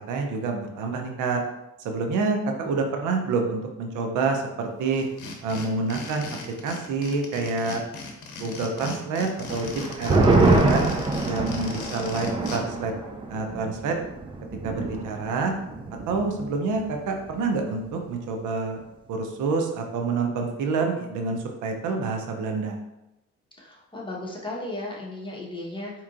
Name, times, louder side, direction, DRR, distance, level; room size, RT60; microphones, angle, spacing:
voice 1, 0.1-1.4 1.8-5.0 5.4-7.8 8.4-10.9 11.2-12.9 13.3-14.0 14.6-15.5 16.1-18.8 19.1-22.8, right 4 dB, 85° right, 3 dB, 0.6 m, -27 dB
sound 1, 4.9-12.6, left 3 dB, 90° left, 0.7 m, -38 dB
sound 2, 9.5-16.4 16.7-16.8 17.2-17.7, right 2 dB, 20° right, 0.4 m, -25 dB
voice 2, 23.6-25.9, left 1 dB, 15° left, -4 dB, 1.1 m, -35 dB
4.5 x 2.9 x 2.5 m, 0.92 s
cardioid pair, 90°, 30 cm